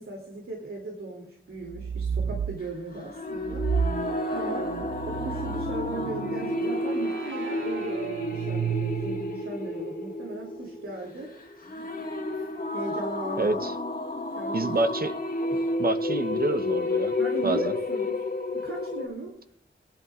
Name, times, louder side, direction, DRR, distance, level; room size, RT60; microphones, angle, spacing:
voice 1, 0.0-3.7 4.3-4.7 5.0-11.3 12.7-13.7 14.3-15.0 15.5-15.7 17.2-18.2 18.5-19.3, right 2 dB, 90° right, -1 dB, 2.6 m, -37 dB
sound 1, 1.7-2.6 3.4-9.5, right 7 dB, 70° right, 0.5 m, -32 dB
sound 2, 3.0-19.1, left 2 dB, 40° left, 1.7 m, -31 dB
voice 2, 13.4-13.7 14.5-15.2 15.8-17.1 17.4-17.7, right 2 dB, 45° right, 8 dB, 0.8 m, -27 dB
22.0 x 11.0 x 2.4 m, 0.67 s
wide cardioid pair, 85°, 21 cm